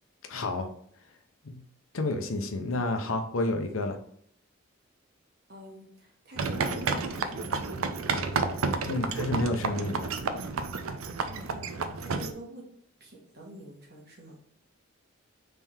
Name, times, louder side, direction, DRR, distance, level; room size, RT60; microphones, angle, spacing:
voice 1, 0.3-0.7 1.4-1.6 1.9-4.0 8.9-10.1, left 2 dB, 80° left, 6 dB, 0.7 m, -30 dB
voice 2, 5.5-8.3 11.2-12.6 13.0-14.4, right 1 dB, 50° right, -1 dB, 1.4 m, -46 dB
sound 1, 6.4-12.3, right 4 dB, 80° right, 0.5 m, -31 dB
3.7 x 3.4 x 4.3 m, 0.66 s
head